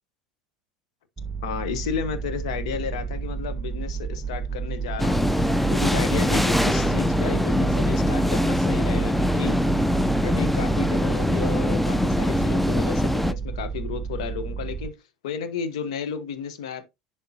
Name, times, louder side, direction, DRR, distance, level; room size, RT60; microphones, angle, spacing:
sound 1, 1.2-14.9, right 6 dB, 15° right, 1.0 m, -30 dB
voice 1, 1.4-9.6 10.2-15.0 15.2-16.8, left 7 dB, 70° left, 0.9 m, -33 dB
sound 2, 5.0-13.3, left 1 dB, 5° left, 0.4 m, -23 dB
10.5 x 3.6 x 2.7 m
hypercardioid pair, 75°, 3 cm